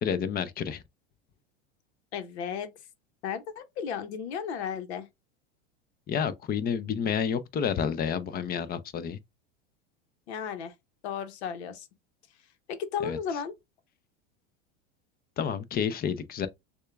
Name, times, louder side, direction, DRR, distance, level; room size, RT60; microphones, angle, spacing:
voice 1, 0.0-0.8 6.1-9.2 13.0-13.2 15.4-16.5, left 7 dB, 30° left, 0.6 m, -29 dB
voice 2, 2.1-2.7 3.2-5.1 10.3-10.7 11.0-11.9 12.7-13.5, left 7 dB, 75° left, 1.0 m, -34 dB
6.4 x 2.4 x 2.3 m
hypercardioid pair, 105°, 33 cm